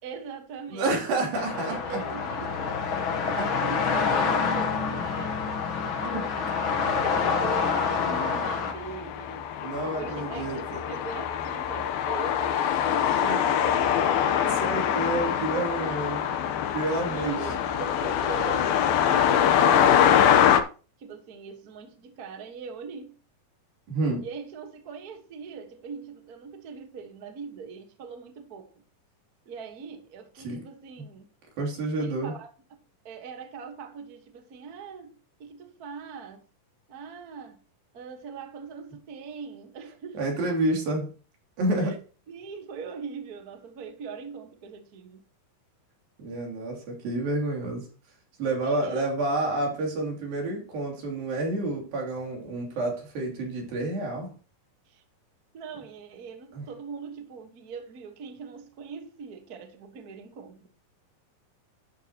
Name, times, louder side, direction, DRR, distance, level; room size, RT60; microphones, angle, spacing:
voice 1, 0.0-1.1 1.5-2.9 3.3-6.4 7.0-9.5 9.8-14.3 17.1-20.6 21.0-23.2 24.2-28.7 29.4-31.3 32.0-32.5 33.0-36.4 36.9-37.6 37.9-40.2 41.8-42.0 42.3-45.2 48.6-49.1 54.9-55.0 55.5-60.7, right 5 dB, 50° right, 1.1 m, -41 dB
voice 2, 0.7-2.0 3.4-3.5 6.0-6.2 9.6-10.8 13.0-13.4 14.4-16.4 16.7-17.4 23.9-24.2 30.4-30.6 31.6-32.3 40.1-41.1 41.6-42.0 46.2-47.9 48.4-54.3 56.5-56.6, right 2 dB, 80° right, 4.8 m, -29 dB
sound 1, 1.3-8.7, left 5 dB, 65° left, 1.2 m, -27 dB
sound 2, 2.3-2.6 3.2-4.2 4.5-4.6 5.0-20.6, left 9 dB, 90° left, 2.8 m, -25 dB
11.5 x 9.1 x 3.0 m
omnidirectional pair, 4.1 m